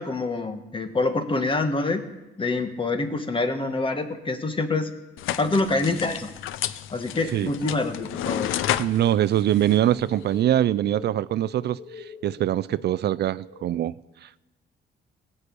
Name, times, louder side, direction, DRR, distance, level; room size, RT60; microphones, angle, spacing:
voice 1, 0.0-2.0 2.4-4.9 5.4-6.3 6.9-8.5, left 3 dB, 25° left, 8 dB, 1.5 m, -26 dB
sound 1, 5.2-10.4, left 12 dB, 85° left, 0.6 m, -32 dB
sound 2, 7.3-13.8, left 4 dB, 70° left, 2.7 m, -44 dB
voice 2, 8.8-13.9 14.2-14.4, right 12 dB, 60° right, 18 dB, 0.4 m, -23 dB
18.0 x 6.8 x 8.4 m, 1.1 s
cardioid pair, 90°, 20 cm